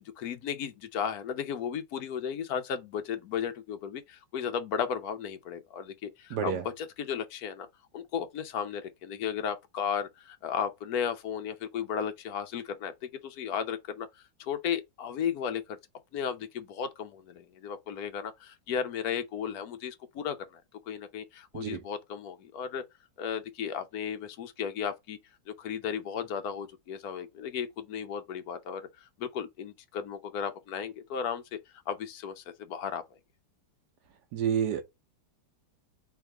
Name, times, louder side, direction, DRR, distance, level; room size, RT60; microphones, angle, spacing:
voice 1, 0.0-7.7 7.9-14.1 14.4-15.8 16.1-22.8 23.2-25.2 25.6-31.6 31.9-33.0, left 7 dB, 65° left, 1.1 m, -35 dB
voice 2, 6.3-6.6 21.5-21.8 34.3-34.8, right 8 dB, 65° right, 1.2 m, -29 dB
3.5 x 3.1 x 4.7 m
omnidirectional pair, 2.0 m